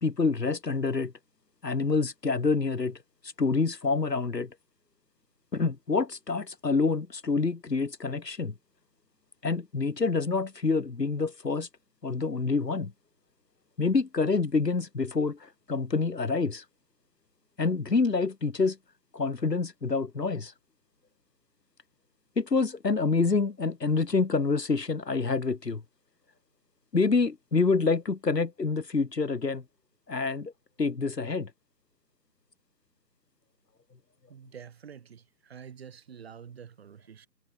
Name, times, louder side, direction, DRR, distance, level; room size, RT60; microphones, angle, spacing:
voice 1, 0.0-1.1 1.6-3.0 3.4-4.5 5.5-8.5 9.4-11.7 12.0-12.9 13.8-16.6 17.6-18.8 19.1-20.5 22.4-25.8 26.9-29.6 30.1-30.5 30.8-31.5, left 4 dB, 75° left, 1.9 m, -27 dB
voice 2, 34.3-37.3, right 7 dB, 35° right, 6.6 m, -47 dB
figure-of-eight pair, 150°, 50 cm